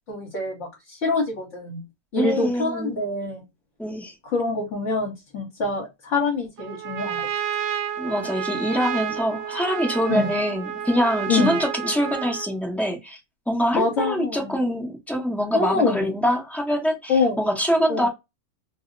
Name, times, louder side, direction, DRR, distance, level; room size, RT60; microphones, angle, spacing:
voice 1, 0.1-1.8 2.1-3.4 4.2-7.3 10.1-10.3 11.3-11.6 13.7-14.6 15.5-16.2 17.1-17.4 17.9-18.1, left 3 dB, 55° left, 1.2 m, -25 dB
voice 2, 2.2-3.0 3.8-4.1 8.0-13.2 13.5-18.1, equal, ahead, 0.4 m, -24 dB
Trumpet, 6.6-12.6, right 9 dB, 70° right, 0.7 m, -30 dB
2.7 x 2.0 x 3.7 m
omnidirectional pair, 1.6 m